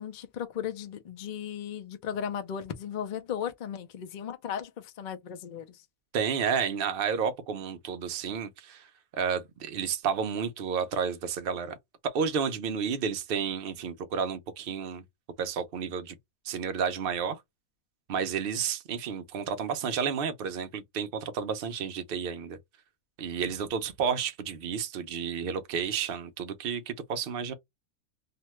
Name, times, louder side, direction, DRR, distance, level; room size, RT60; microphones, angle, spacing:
voice 1, 0.0-5.8, left 8 dB, 80° left, 0.4 m, -36 dB
voice 2, 6.1-8.9 9.2-11.8 12.0-15.0 15.4-16.2 16.4-17.4 18.1-22.6 23.2-27.5, right 6 dB, 70° right, 0.5 m, -31 dB
2.8 x 2.2 x 2.9 m
omnidirectional pair, 1.6 m